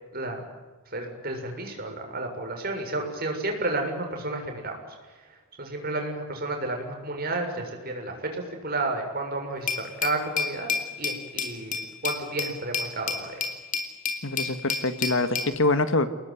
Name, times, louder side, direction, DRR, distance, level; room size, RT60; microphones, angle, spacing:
voice 1, 0.9-4.8 5.2-13.5, right 2 dB, 45° right, 3 dB, 7.2 m, -32 dB
Glass, 9.7-15.5, left 5 dB, 35° left, 3.4 m, -31 dB
voice 2, 14.2-16.1, left 2 dB, 60° left, 10 dB, 1.9 m, -24 dB
30.0 x 20.5 x 9.6 m, 1.2 s
head